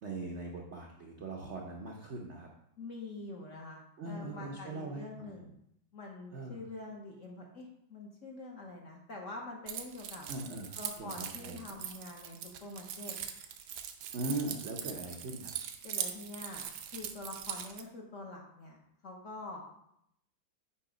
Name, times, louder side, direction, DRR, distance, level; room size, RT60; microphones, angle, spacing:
voice 1, 0.0-2.5 4.0-5.4 6.3-6.6 10.3-11.1 11.4-11.6 14.1-15.5, right 2 dB, 60° right, -1 dB, 0.7 m, -40 dB
voice 2, 2.8-5.5 5.9-10.3 10.7-13.2 15.8-16.7 16.9-19.6, left 2 dB, 50° left, -1 dB, 1.0 m, -45 dB
Keys jangling, 9.7-17.8, right 9 dB, 85° right, 1.4 m, -41 dB
8.5 x 3.0 x 5.0 m, 0.75 s
omnidirectional pair, 2.1 m